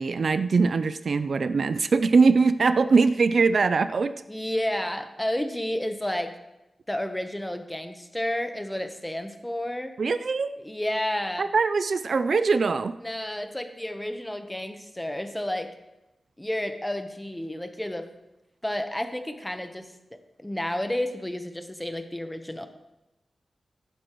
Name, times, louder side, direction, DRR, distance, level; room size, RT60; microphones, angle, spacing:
voice 1, 0.0-4.1 10.0-10.5 11.4-13.0, right 4 dB, 60° right, 12 dB, 0.4 m, -22 dB
voice 2, 4.3-6.3 6.9-9.9 10.6-11.5 13.0-15.7 16.4-18.1 18.6-22.7, left 1 dB, 10° left, 7 dB, 0.9 m, -31 dB
14.5 x 11.5 x 3.0 m, 0.94 s
wide cardioid pair, 125°, 0 cm